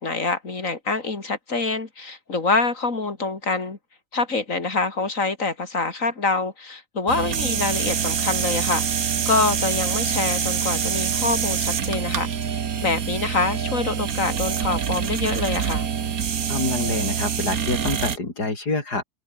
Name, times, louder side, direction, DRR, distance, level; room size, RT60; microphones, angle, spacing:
voice 1, 0.0-3.8 4.1-12.3 12.8-15.9, left 3 dB, 55° left, 3.4 m, -25 dB
sound 1, 7.1-18.2, right 7 dB, 65° right, 1.8 m, -25 dB
voice 2, 16.5-19.0, left 3 dB, 85° left, 5.4 m, -26 dB
omnidirectional pair, 1.7 m